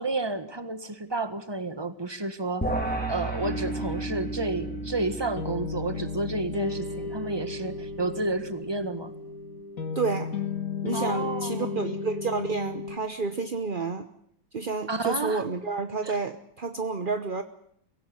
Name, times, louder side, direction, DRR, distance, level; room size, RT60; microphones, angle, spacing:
voice 1, 0.0-2.7 3.1-9.1 10.9-11.7 14.9-15.4 16.0-16.1, right 2 dB, 15° right, 11 dB, 1.3 m, -31 dB
sound 1, 2.6-8.1, right 2 dB, 5° left, 3.3 m, -35 dB
sound 2, 3.4-13.0, left 4 dB, 40° left, 2.6 m, -34 dB
voice 2, 9.9-10.4 10.8-14.1 14.5-17.4, right 4 dB, 40° right, 8 dB, 0.7 m, -30 dB
23.5 x 17.0 x 9.6 m, 0.68 s
omnidirectional pair, 2.3 m